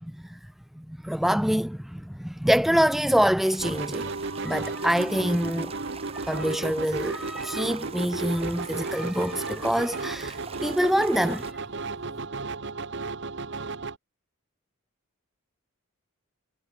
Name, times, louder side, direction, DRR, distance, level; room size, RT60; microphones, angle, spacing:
voice 1, 0.8-5.7 6.1-11.5, equal, ahead, 0.4 m, -26 dB
sound 1, 3.4-11.5, right 6 dB, 30° right, 0.9 m, -44 dB
sound 2, 3.6-14.0, right 3 dB, 55° right, 1.1 m, -34 dB
head